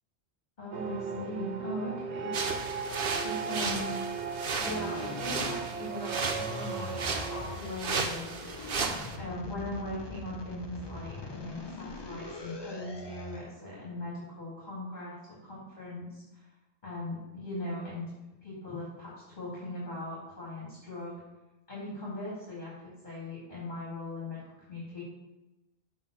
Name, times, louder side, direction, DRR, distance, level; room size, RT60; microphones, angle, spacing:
voice 1, 0.6-2.6 3.2-3.9 4.6-7.0 7.3-8.4 9.2-16.5 16.8-18.1 18.4-21.2 21.7-25.0, left 1 dB, 45° left, -8 dB, 2.8 m, -39 dB
sound 1, 0.7-7.6, right 5 dB, 90° right, 1.1 m, -37 dB
sound 2, 2.3-9.2, right 4 dB, 55° right, 1.0 m, -35 dB
sound 3, 4.6-5.9 6.2-7.9 8.3-13.5, left 3 dB, 25° left, 0.7 m, -43 dB
7.6 x 3.6 x 6.4 m, 1.0 s
omnidirectional pair, 1.1 m